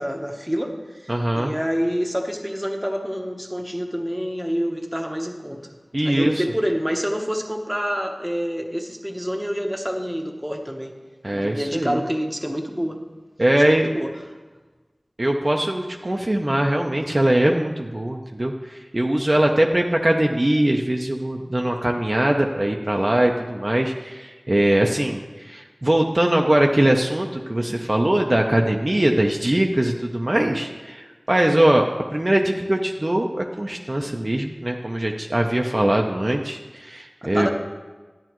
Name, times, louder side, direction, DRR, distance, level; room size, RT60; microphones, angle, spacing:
voice 1, 0.0-5.6 6.0-11.0 11.3-13.0 13.7-14.1 24.8-25.1 37.2-37.5, equal, 10° right, 3 dB, 1.0 m, -27 dB
voice 2, 1.1-1.5 5.9-6.3 11.2-12.0 13.4-13.9 15.2-31.9 32.1-37.5, right 1 dB, 40° right, 1 dB, 0.6 m, -21 dB
11.5 x 9.5 x 3.0 m, 1.3 s
wide cardioid pair, 50°, 0 cm